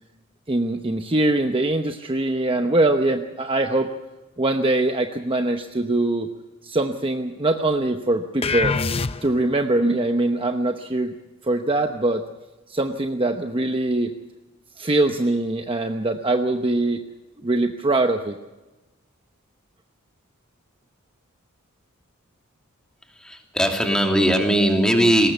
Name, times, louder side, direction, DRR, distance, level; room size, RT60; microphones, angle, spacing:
voice 1, 0.5-3.9 4.4-6.3 6.6-8.8 9.2-11.1 11.4-12.2 12.7-14.1 14.8-17.0 17.4-18.3, right 2 dB, 25° right, 5 dB, 0.9 m, -22 dB
sound 1, 8.4-9.6, left 4 dB, 25° left, 0.6 m, -24 dB
voice 2, 23.2-25.3, equal, 5° left, 2 dB, 2.7 m, -19 dB
20.5 x 19.0 x 6.9 m, 1.1 s
head